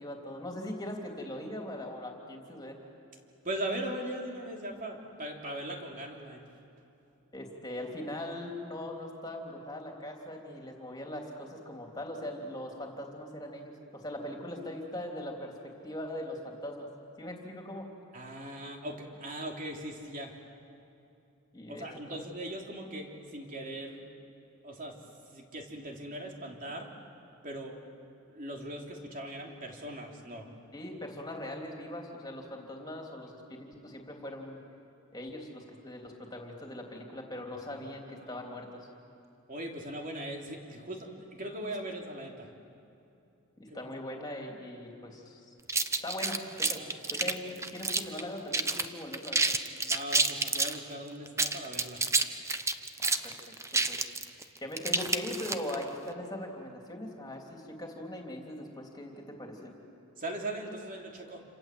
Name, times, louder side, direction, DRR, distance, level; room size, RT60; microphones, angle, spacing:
voice 1, 0.0-2.8 7.3-16.9 17.2-17.9 21.5-22.2 30.7-34.6 35.1-38.9 43.6-45.5 46.0-46.8 47.1-49.4 53.0-54.0 54.6-59.7, left 1 dB, 20° left, 1 dB, 3.4 m, -40 dB
voice 2, 3.4-6.4 18.1-20.3 21.7-24.1 24.6-24.9 25.3-26.9 27.4-27.8 28.3-30.5 38.2-38.3 39.5-42.5 43.7-43.8 46.7-46.9 49.8-52.0 60.2-61.4, right 1 dB, 40° right, 1 dB, 3.3 m, -39 dB
sound 1, 45.7-48.2 48.5-48.9 49.1-50.8 51.3-55.8, right 3 dB, 15° right, 0.8 m, -29 dB
28.5 x 27.0 x 7.8 m, 2.8 s
head